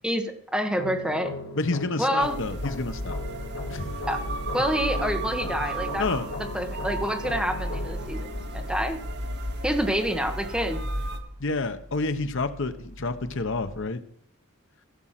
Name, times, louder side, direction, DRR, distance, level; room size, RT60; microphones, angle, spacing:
voice 1, 0.0-1.3 2.0-2.4 4.1-4.2 4.5-6.1 6.5-9.0 9.6-10.8, equal, 5° right, 5 dB, 1.3 m, -27 dB
sound 1, 0.8-9.8, left 2 dB, 80° left, 3.4 m, -39 dB
voice 2, 1.6-3.2 3.7-4.1 5.6-5.7 6.0-6.3 11.4-14.0, left 3 dB, 60° left, 10 dB, 1.0 m, -29 dB
sound 2, 2.2-11.2, right 1 dB, 55° right, 1.4 m, -33 dB
Vehicle horn car horn honking / Traffic noise roadway noise, 8.5-13.9, equal, 40° right, 4.8 m, -47 dB
15.5 x 6.3 x 5.9 m, 0.69 s
head